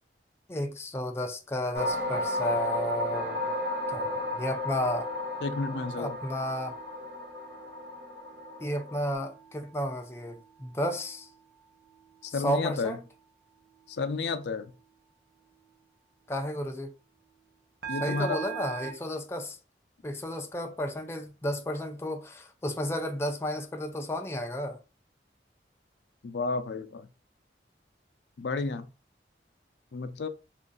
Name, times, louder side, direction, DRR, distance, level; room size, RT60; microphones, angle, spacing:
voice 1, 0.5-3.5 3.9-5.1 6.0-6.8 8.6-11.3 12.3-13.0 16.3-16.9 18.0-19.6 20.0-24.8, equal, 15° left, 0.4 m, -32 dB
sound 1, 1.7-9.1, left 2 dB, 85° right, 1.3 m, -34 dB
sound 2, 3.1-11.4 11.9-12.2 17.8-18.9, right 7 dB, 60° right, 0.7 m, -43 dB
voice 2, 5.4-6.2 12.2-13.0 13.9-14.7 17.9-18.4 26.2-27.1 28.4-28.9 29.9-30.3, left 4 dB, 80° left, 0.5 m, -31 dB
3.1 x 2.5 x 3.8 m
head